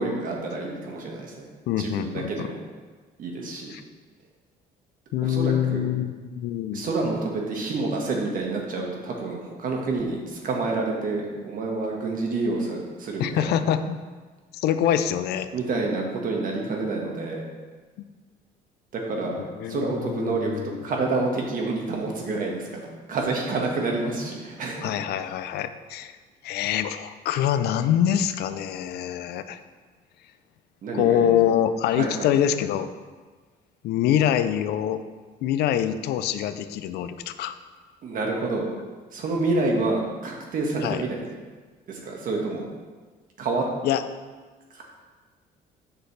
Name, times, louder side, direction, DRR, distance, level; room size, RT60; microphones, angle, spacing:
voice 1, 0.0-1.5 1.8-2.6 3.2-3.7 5.2-5.8 6.7-13.5 15.5-17.4 18.9-19.4 19.7-24.8 30.8-31.3 31.9-32.3 38.0-38.7 39.1-41.3 41.9-42.7 43.4-43.7 44.7-44.8, right 3 dB, 55° right, 0 dB, 1.5 m, -28 dB
voice 2, 1.7-2.5 3.7-3.8 5.1-6.9 13.2-14.0 14.5-15.5 19.4-20.8 24.8-26.1 26.4-29.6 30.9-32.9 33.8-35.0 35.4-37.6 40.8-41.0 43.8-44.0, left 10 dB, 75° left, 11 dB, 0.5 m, -25 dB
8.0 x 6.0 x 3.2 m, 1.4 s
cardioid pair, 110°, 17 cm